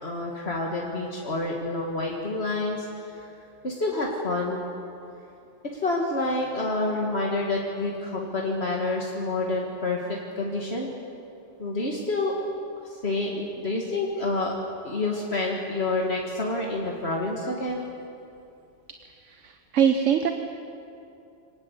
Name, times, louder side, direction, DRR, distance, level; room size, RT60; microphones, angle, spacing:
voice 1, 0.0-3.3 3.6-4.7 5.7-10.9 11.6-12.5 12.8-14.5 14.8-17.9, left 2 dB, 60° left, -2 dB, 2.3 m, -28 dB
voice 2, 19.2-20.3, right 8 dB, 85° right, 6 dB, 1.4 m, -23 dB
24.5 x 19.0 x 8.2 m, 2.7 s
omnidirectional pair, 1.2 m